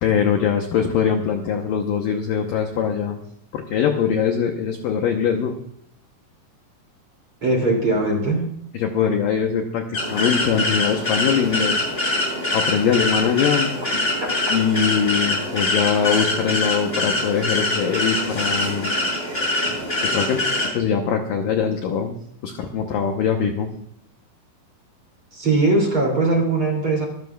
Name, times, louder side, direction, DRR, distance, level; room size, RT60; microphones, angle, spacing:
voice 1, 0.0-3.2 3.5-5.6 8.7-11.8 12.5-13.7 14.5-18.9 20.0-20.4 20.7-22.2 22.4-23.7, left 7 dB, 85° left, 3 dB, 1.9 m, -22 dB
voice 2, 7.4-8.5 14.2-14.5 25.3-27.1, right 2 dB, 35° right, 1 dB, 2.9 m, -20 dB
sound 1, 9.9-20.7, left 2 dB, 15° left, 7.7 m, -24 dB
25.0 x 13.0 x 2.4 m, 0.68 s
omnidirectional pair, 5.3 m